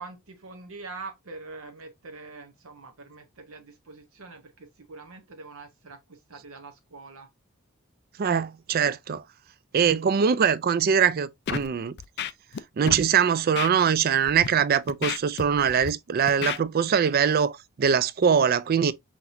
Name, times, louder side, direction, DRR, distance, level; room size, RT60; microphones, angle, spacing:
voice 1, 0.0-7.3, right 3 dB, 70° right, 0.8 m, -44 dB
voice 2, 8.2-9.2 9.7-11.9 12.8-18.9, right 7 dB, 45° right, 0.3 m, -22 dB
Scratching (performance technique), 11.5-11.7 12.0-12.6 12.9-13.0 13.6-13.7 14.3-14.5 14.9-15.9 16.3-16.6, left 8 dB, 50° left, 0.4 m, -31 dB
5.9 x 2.9 x 2.5 m
head